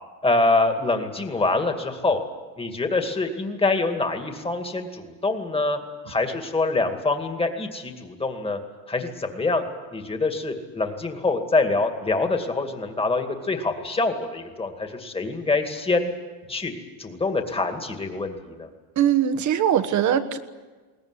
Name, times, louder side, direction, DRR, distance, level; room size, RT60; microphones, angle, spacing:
voice 1, 0.2-2.2 2.6-5.8 6.1-8.6 8.9-9.6 9.9-16.2 16.5-16.7 17.0-18.7, left 3 dB, 10° left, 5 dB, 2.3 m, -25 dB
voice 2, 19.0-20.4, right 9 dB, 40° right, 8 dB, 1.4 m, -21 dB
22.0 x 19.0 x 9.9 m, 1.3 s
cardioid pair, 140°, 45 cm